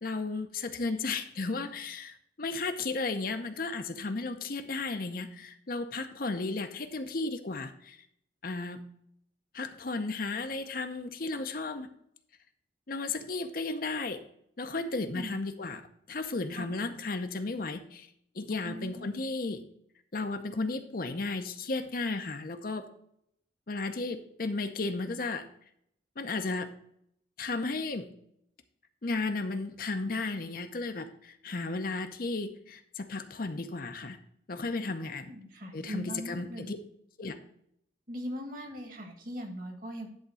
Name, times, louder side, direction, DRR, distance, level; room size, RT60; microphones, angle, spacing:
voice 1, 0.0-8.0 8.4-8.8 9.5-11.9 12.9-14.2 14.6-18.1 18.3-19.6 20.1-22.9 23.7-25.5 26.2-26.7 27.4-28.1 29.0-34.2 34.5-35.3 35.7-36.8 37.2-37.4, left 3 dB, 50° left, 7 dB, 0.7 m, -34 dB
voice 2, 18.6-19.1 35.0-36.7 38.1-40.1, equal, 45° right, 3 dB, 1.7 m, -40 dB
11.0 x 3.6 x 6.2 m, 0.72 s
head